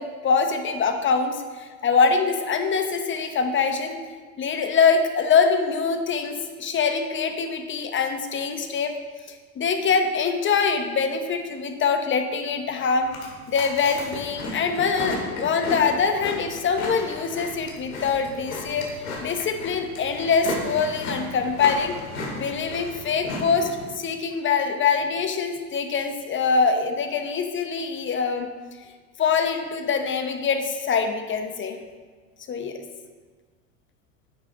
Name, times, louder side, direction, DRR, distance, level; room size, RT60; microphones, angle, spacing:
voice 1, 0.0-4.0 4.4-8.9 9.3-13.1 13.5-18.9 19.2-22.0 22.3-28.5 29.2-31.8 32.5-32.7, left 5 dB, 30° left, 7 dB, 0.9 m, -24 dB
Chewing mastication, 13.0-23.8, left 2 dB, 80° left, 2.0 m, -34 dB
8.9 x 5.8 x 3.8 m, 1.4 s
hypercardioid pair, 90°, 42 cm